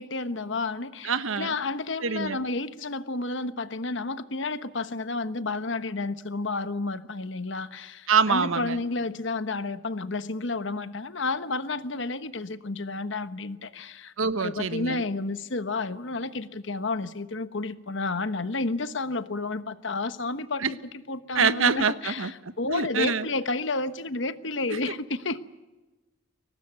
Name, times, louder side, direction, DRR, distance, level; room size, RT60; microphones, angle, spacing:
voice 1, 0.0-14.1 14.4-20.8 21.1-25.4, left 3 dB, 60° left, 12 dB, 1.2 m, -31 dB
voice 2, 1.0-1.5 2.0-2.4 8.1-8.8 14.2-15.0 20.6-20.7 21.3-22.3 22.7-23.3, right 5 dB, 85° right, 13 dB, 1.1 m, -25 dB
23.0 x 19.0 x 9.2 m, 1.1 s
head